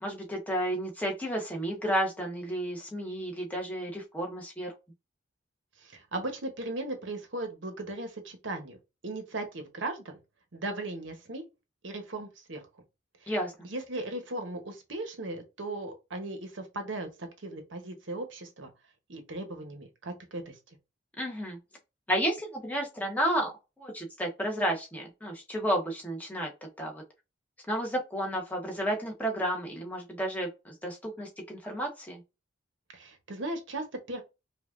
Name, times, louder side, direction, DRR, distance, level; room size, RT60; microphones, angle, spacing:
voice 1, 0.0-4.7 13.3-13.5 21.2-21.6 22.1-23.5 23.8-26.5 26.8-27.0 27.7-32.2, equal, 10° left, 1.0 m, -32 dB
voice 2, 5.8-8.8 9.0-10.2 10.5-11.5 11.8-12.7 13.2-13.3 13.6-18.7 19.1-20.8 32.9-34.2, right 2 dB, 75° right, 1.0 m, -37 dB
5.0 x 2.4 x 2.5 m
head